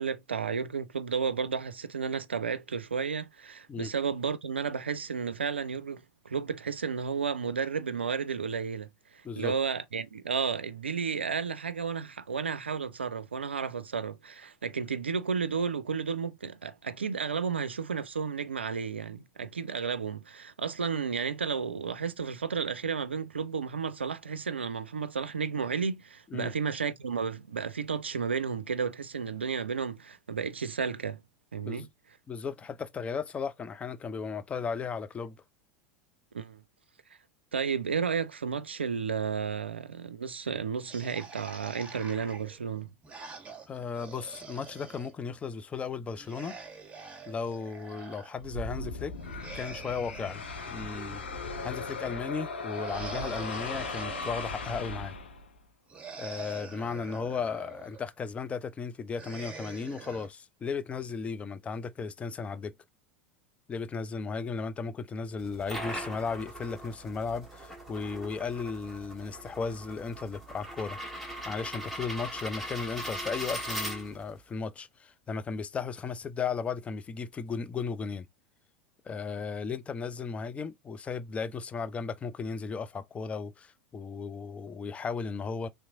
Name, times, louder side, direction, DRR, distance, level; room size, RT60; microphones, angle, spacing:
voice 1, 0.0-31.2 31.5-31.9 36.3-36.6 37.5-42.9, right 6 dB, 85° right, 0.4 m, -32 dB
voice 2, 9.2-9.6 26.3-26.5 31.6-31.9 32.3-35.4 43.7-46.6 47.3-49.2 49.5-51.2 51.6-55.1 56.2-62.7 63.7-71.0 71.4-78.3 79.0-85.7, left 5 dB, 20° left, 0.4 m, -35 dB
sound 1, 40.9-45.1 46.1-48.3 49.2-51.5 52.7-54.9 55.9-58.1 59.1-60.3, right 5 dB, 20° right, 1.4 m, -46 dB
sound 2, 48.4-55.6, left 3 dB, 80° left, 0.8 m, -38 dB
sound 3, 65.4-74.4, right 1 dB, 5° left, 1.6 m, -40 dB
3.4 x 2.9 x 2.5 m
figure-of-eight pair, 85°, 6 cm